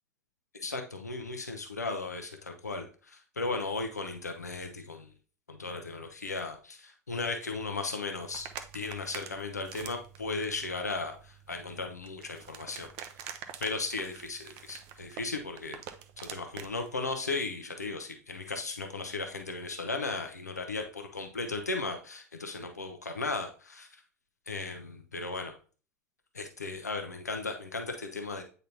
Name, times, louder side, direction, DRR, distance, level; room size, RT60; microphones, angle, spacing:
voice 1, 0.5-5.1 5.5-12.9 13.6-15.8 16.2-24.0 24.5-25.5 26.3-28.4, left 3 dB, 90° left, 5 dB, 0.8 m, -36 dB
sound 1, 8.2-17.1, right 9 dB, 55° right, 0.7 m, -47 dB
8.8 x 4.0 x 2.8 m, 0.38 s
figure-of-eight pair, 80°, 9 cm